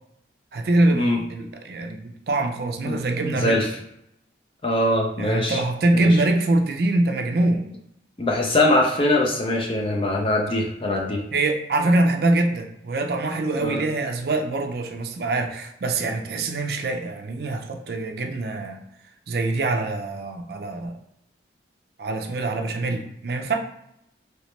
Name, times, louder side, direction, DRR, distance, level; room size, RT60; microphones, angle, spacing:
voice 1, 0.5-3.6 5.2-7.6 11.3-18.8 19.3-21.0 22.0-23.6, right 2 dB, 60° right, 4 dB, 0.4 m, -24 dB
voice 2, 2.9-3.8 4.6-5.6 5.9-6.2 8.2-11.2 13.6-13.8, left 1 dB, 30° left, 0 dB, 0.5 m, -22 dB
3.1 x 3.0 x 3.1 m, 0.77 s
head